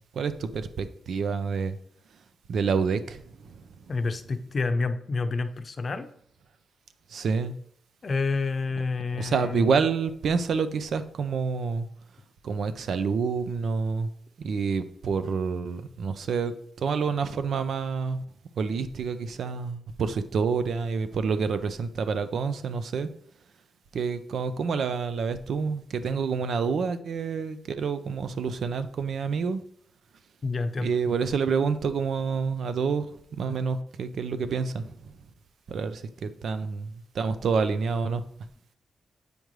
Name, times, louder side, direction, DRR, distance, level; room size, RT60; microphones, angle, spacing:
voice 1, 0.1-1.8 2.1-3.9 7.1-7.6 9.1-11.9 12.4-14.1 14.4-18.2 18.5-23.1 23.9-29.6 30.8-35.3 35.7-38.2, right 5 dB, 70° right, 0.6 m, -28 dB
voice 2, 3.9-6.1 8.0-9.7 30.4-30.9, left 4 dB, 45° left, 0.6 m, -28 dB
7.9 x 5.2 x 3.2 m
cardioid pair, 100°, 0 cm